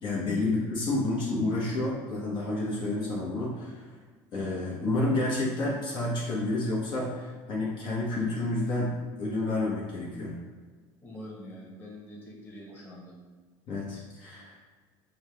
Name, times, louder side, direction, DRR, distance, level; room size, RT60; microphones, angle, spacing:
voice 1, 0.0-3.9 4.3-10.3 13.7-14.6, left 2 dB, 50° left, -6 dB, 1.1 m, -30 dB
voice 2, 11.0-13.1, left 1 dB, 20° left, -5 dB, 1.4 m, -45 dB
5.6 x 2.2 x 3.4 m, 1.5 s
supercardioid pair, 110°, 10 cm